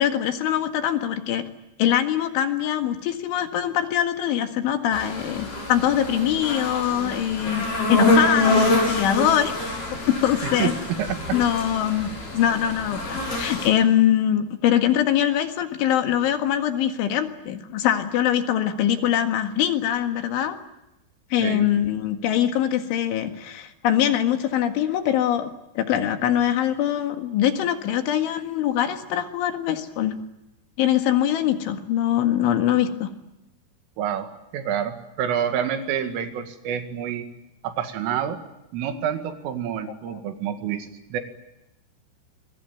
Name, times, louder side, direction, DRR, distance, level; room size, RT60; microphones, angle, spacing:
voice 1, 0.0-1.4 1.8-9.6 9.9-10.7 11.3-20.6 21.3-30.2 30.8-33.1 40.1-40.2, left 10 dB, 70° left, 7 dB, 4.1 m, -23 dB
sound 1, 4.9-13.7, left 2 dB, 40° left, 7.7 m, -26 dB
voice 2, 10.4-11.4 21.4-21.7 34.0-34.3 34.5-37.3 37.6-38.4 38.7-41.2, right 9 dB, 75° right, 7 dB, 4.6 m, -28 dB
27.0 x 22.5 x 9.3 m, 0.90 s
omnidirectional pair, 6.0 m